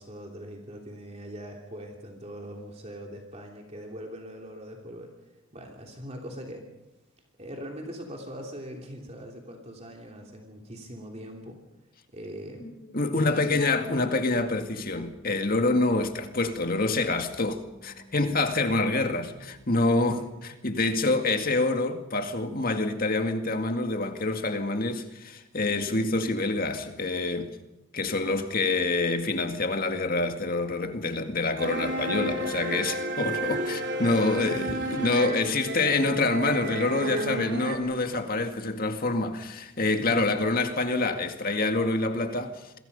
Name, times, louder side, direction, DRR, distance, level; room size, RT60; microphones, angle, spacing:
voice 1, 0.0-5.1 5.5-6.7 7.4-11.6 12.1-12.8 13.1-13.9 20.2-20.3 34.1-34.7 35.8-35.9 37.2-37.5 39.9-40.2, equal, 30° right, 3.1 m, -41 dB
voice 2, 12.6-27.6 27.9-42.7, left 2 dB, 45° left, 2.1 m, -26 dB
sound 1, 13.2-19.7, left 1 dB, 90° left, 5.1 m, -54 dB
sound 2, 31.6-37.8, right 1 dB, 55° right, 2.9 m, -32 dB
28.0 x 22.0 x 5.5 m
head